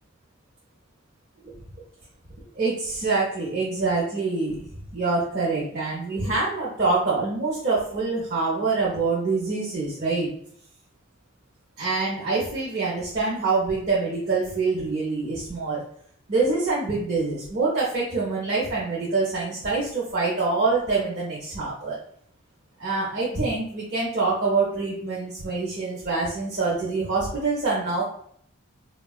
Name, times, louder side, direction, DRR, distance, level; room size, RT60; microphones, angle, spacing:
voice 1, 2.6-4.7 4.9-10.3 11.8-15.8 16.3-22.0 22.8-28.0, right 3 dB, 40° right, -6 dB, 0.6 m, -25 dB
3.5 x 2.2 x 2.3 m, 0.64 s
head